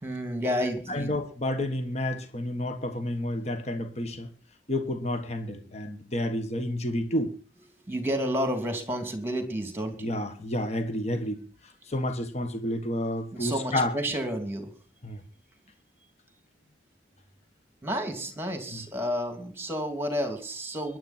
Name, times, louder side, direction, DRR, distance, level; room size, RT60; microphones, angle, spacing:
voice 1, 0.0-1.1 7.8-10.2 13.3-14.7 17.8-21.0, equal, 10° right, 2.8 m, -31 dB
voice 2, 0.9-4.3 4.7-7.3 10.0-11.4 11.9-13.9 15.0-15.2 18.7-18.8, left 1 dB, 35° left, 1.5 m, -30 dB
22.5 x 10.5 x 4.4 m
head